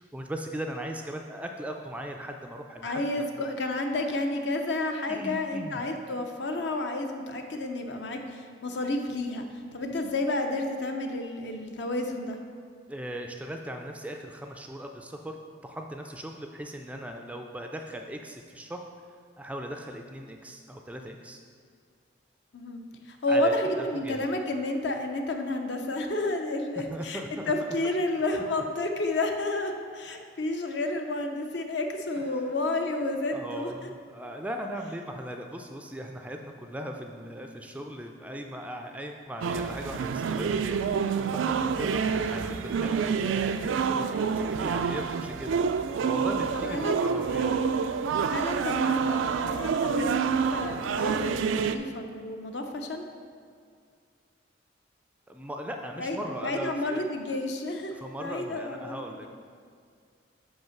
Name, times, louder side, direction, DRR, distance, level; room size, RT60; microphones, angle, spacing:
voice 1, 0.1-3.5 5.1-5.9 12.9-18.8 19.4-21.4 23.3-24.3 26.9-27.8 28.3-28.4 32.2-32.5 33.3-47.8 55.3-57.0 57.9-59.3, right 1 dB, 5° right, 3 dB, 0.3 m, -39 dB
voice 2, 2.8-9.5 9.7-12.4 22.5-22.8 23.1-33.7 42.1-42.3 46.5-47.0 48.1-53.0 56.0-57.9 58.2-59.3, left 2 dB, 65° left, 4 dB, 0.7 m, -31 dB
sound 1, 39.4-51.8, right 6 dB, 85° right, 0.3 m, -27 dB
5.6 x 5.4 x 5.8 m, 2.1 s
head